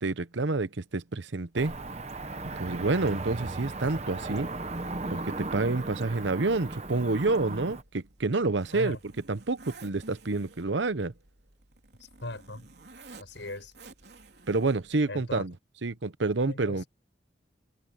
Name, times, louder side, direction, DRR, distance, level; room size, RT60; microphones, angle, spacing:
voice 1, 0.0-1.7 2.4-4.5 5.1-9.0 9.3-11.1 14.5-15.5 15.8-16.8, right 3 dB, 85° right, 0.9 m, -28 dB
Cricket / Motor vehicle (road), 1.6-7.8, right 2 dB, 35° right, 0.9 m, -36 dB
Zipper (clothing), 7.6-15.0, right 3 dB, 65° right, 3.6 m, -53 dB
voice 2, 12.0-12.7 13.2-13.7 15.1-15.4 16.5-16.9, left 1 dB, 90° left, 6.3 m, -38 dB
head